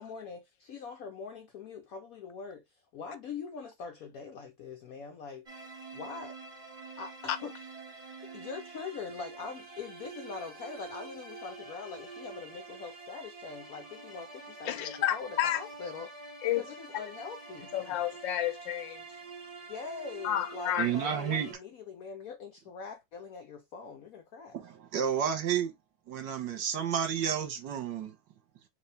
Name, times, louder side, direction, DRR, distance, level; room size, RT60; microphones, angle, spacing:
voice 1, 0.0-5.6 5.9-6.3 7.0-7.5 8.2-17.8 19.7-24.6, left 5 dB, 65° left, 1.0 m, -43 dB
sound 1, 5.5-21.5, right 4 dB, 30° right, 0.7 m, -47 dB
voice 2, 14.7-15.6 16.4-16.6 17.7-19.0 20.2-21.1, left 12 dB, 80° left, 1.4 m, -31 dB
voice 3, 20.8-21.5 24.5-25.7 26.1-28.2, right 8 dB, 75° right, 1.7 m, -31 dB
4.8 x 2.7 x 3.2 m
omnidirectional pair, 2.0 m